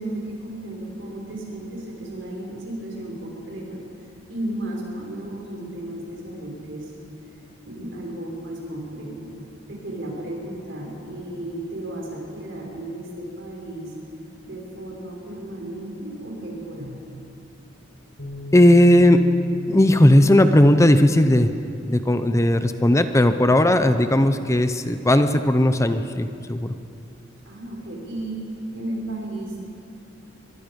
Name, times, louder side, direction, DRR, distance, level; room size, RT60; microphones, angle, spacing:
voice 1, 0.0-3.8 4.3-6.9 7.6-9.3 9.7-13.9 14.4-16.9 27.4-28.4 28.7-29.6, right 1 dB, 70° right, -2 dB, 6.2 m, -34 dB
sound 1, 18.2-24.4, left 4 dB, 90° left, 4.4 m, -40 dB
voice 2, 18.5-19.3 19.7-21.5 21.9-26.7, left 1 dB, 15° left, 9 dB, 0.7 m, -16 dB
23.5 x 22.5 x 5.3 m, 2.6 s
head